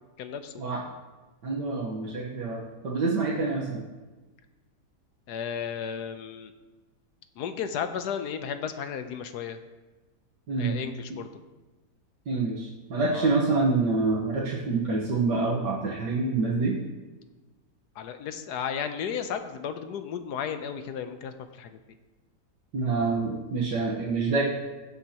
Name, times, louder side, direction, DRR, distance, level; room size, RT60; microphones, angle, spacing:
voice 1, 0.2-0.9 5.3-6.5 7.4-9.6 10.6-11.3 13.1-13.3 18.0-21.8, left 7 dB, 75° left, 9 dB, 1.3 m, -34 dB
voice 2, 1.4-3.8 10.5-10.8 12.3-16.8 22.7-24.4, right 3 dB, 85° right, -5 dB, 1.9 m, -27 dB
15.5 x 7.8 x 2.9 m, 1.2 s
omnidirectional pair, 1.8 m